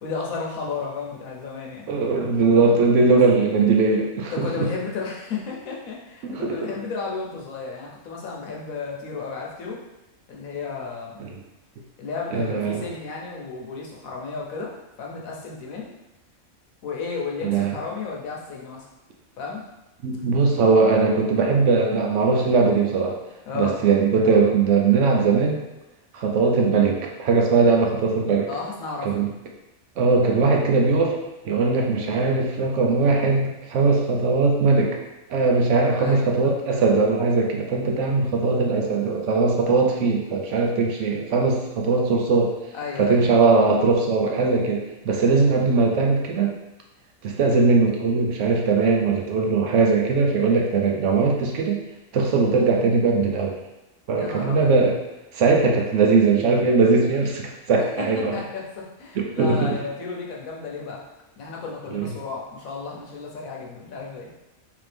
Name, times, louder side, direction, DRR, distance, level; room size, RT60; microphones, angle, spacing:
voice 1, 0.0-1.9 3.1-3.2 4.3-9.8 10.3-11.2 12.0-14.7 15.0-15.9 16.8-18.9 19.4-19.6 23.5-23.8 28.5-29.1 36.0-36.3 42.7-43.3 54.1-54.7 57.8-58.1 58.3-61.0 61.4-64.3, left 4 dB, 85° left, -2 dB, 1.2 m, -33 dB
voice 2, 1.9-4.7 6.2-6.6 11.2-11.3 12.3-12.8 17.4-17.8 20.0-23.2 23.5-25.6 26.1-28.5 29.0-29.3 30.0-31.2 31.4-35.0 35.3-42.5 43.0-46.5 47.2-51.8 52.1-53.5 54.1-55.0 55.3-58.4 59.2-59.8 61.9-62.1, right 4 dB, 70° right, 1 dB, 0.9 m, -20 dB
3.5 x 2.9 x 3.3 m, 1.0 s
omnidirectional pair, 1.4 m